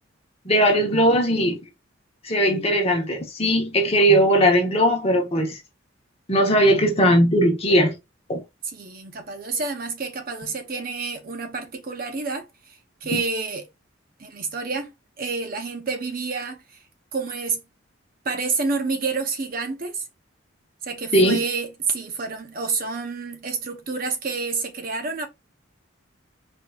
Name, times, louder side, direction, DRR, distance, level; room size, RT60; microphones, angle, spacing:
voice 1, 0.4-1.6 2.2-5.6 6.3-7.9 8.3-8.4 13.1-13.2 21.1-21.4, equal, 30° left, 1.0 m, -19 dB
voice 2, 8.6-13.7 14.2-16.8 17.1-17.6 18.2-20.0 20.8-25.3, right 4 dB, 45° right, 0.6 m, -29 dB
4.4 x 2.8 x 2.3 m
head